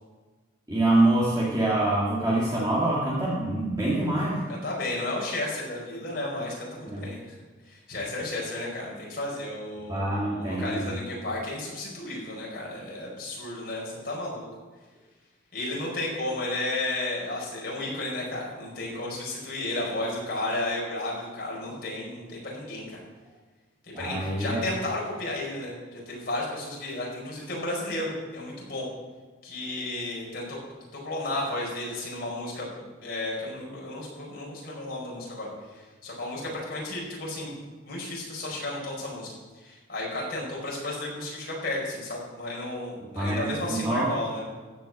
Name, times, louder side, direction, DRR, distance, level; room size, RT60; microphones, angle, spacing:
voice 1, 0.7-4.4 6.9-7.0 9.9-10.9 23.9-24.6 43.2-44.1, right 1 dB, 20° right, -7 dB, 2.0 m, -25 dB
voice 2, 4.5-7.4 7.6-14.4 15.5-23.0 23.8-28.9 29.4-30.6 30.9-32.7 33.0-37.6 37.8-44.6, left 2 dB, 50° left, -3 dB, 5.0 m, -33 dB
14.5 x 6.1 x 7.8 m, 1.3 s
head